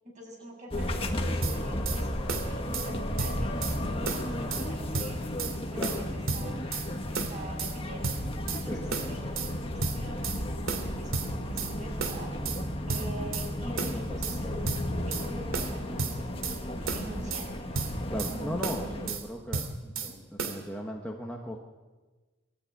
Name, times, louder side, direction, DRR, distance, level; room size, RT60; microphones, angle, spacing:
voice 1, 0.0-6.6 7.1-8.1 8.5-12.3 12.9-14.7 15.0-17.6 18.3-19.2 19.8-20.2, right 1 dB, 35° right, -1 dB, 7.0 m, -45 dB
sound 1, 0.7-19.1, left 1 dB, 25° left, 1.8 m, -34 dB
sound 2, 1.4-2.0 2.3-2.9 3.2-3.8 4.1-4.7 4.9-5.5 5.8-6.9 7.1-7.7 8.0-8.6 8.9-9.5 9.8-10.4 10.7-11.7 12.0-12.6 12.9-13.5 13.8-14.4 14.6-15.3 15.5-16.6 16.9-17.5 17.7-18.3 18.6-19.2 19.5-20.1 20.4-20.6, right 4 dB, 85° right, 2.6 m, -33 dB
voice 2, 8.7-9.0 13.1-13.4 18.1-19.8 20.0-21.6, equal, 5° left, 0 dB, 1.3 m, -37 dB
22.5 x 13.0 x 9.6 m, 1.3 s
head